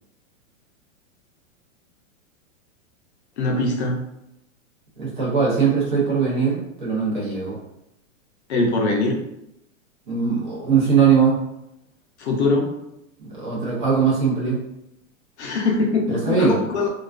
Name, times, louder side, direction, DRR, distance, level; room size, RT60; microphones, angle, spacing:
voice 1, 3.4-4.0 8.5-9.2 12.2-12.7 15.4-16.9, left 3 dB, 55° left, 0 dB, 0.5 m, -22 dB
voice 2, 5.0-7.6 10.1-11.4 13.2-14.6 16.2-16.6, right 6 dB, 35° right, -5 dB, 0.7 m, -20 dB
2.3 x 2.3 x 2.4 m, 0.83 s
supercardioid pair, 180°, 40 cm